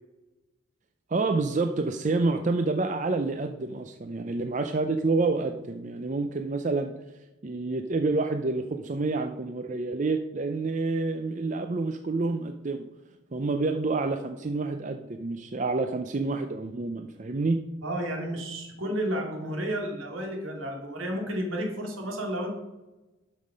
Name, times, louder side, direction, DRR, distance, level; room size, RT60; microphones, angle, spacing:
voice 1, 1.1-6.9 7.4-12.9 13.3-17.6, right 3 dB, 35° right, 7 dB, 0.5 m, -28 dB
voice 2, 17.8-22.5, equal, 75° right, 1 dB, 2.5 m, -31 dB
12.0 x 5.5 x 5.1 m, 1.1 s
head